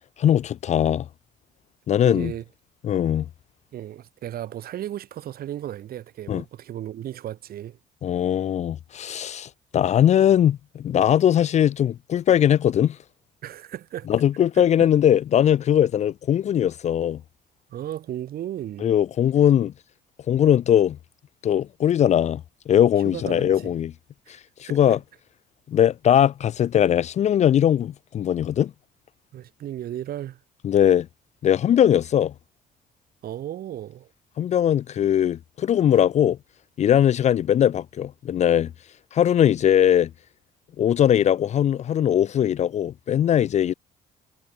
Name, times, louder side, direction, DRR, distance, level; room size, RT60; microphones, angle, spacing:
voice 1, 0.2-1.1 1.9-2.3 2.8-3.3 6.3-6.4 8.0-13.0 14.1-17.2 18.8-19.7 20.3-21.0 21.4-23.9 24.7-25.0 25.7-28.7 30.6-31.1 31.4-32.3 34.4-36.4 36.8-38.7 39.1-40.1 40.8-43.7, left 10 dB, 40° left, 0.5 m, -20 dB
voice 2, 2.0-2.4 3.7-7.8 13.4-14.1 14.5-14.7 17.7-18.9 23.0-23.8 24.3-24.4 24.7-25.0 29.3-30.4 33.2-34.1 35.0-35.1, right 12 dB, 60° right, 7.3 m, -35 dB
cardioid pair, 110°, 17 cm